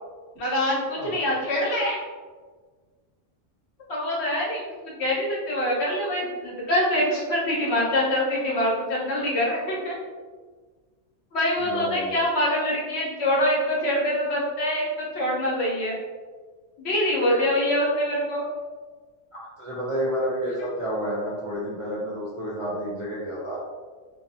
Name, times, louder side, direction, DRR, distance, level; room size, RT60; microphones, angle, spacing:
voice 1, 0.4-2.0 3.9-10.0 11.3-15.9 16.8-18.4 20.6-20.7, left 1 dB, 65° left, -4 dB, 1.0 m, -25 dB
voice 2, 11.6-12.2 19.3-23.6, equal, 45° right, -8 dB, 0.4 m, -30 dB
3.1 x 2.0 x 2.6 m, 1.5 s
omnidirectional pair, 1.2 m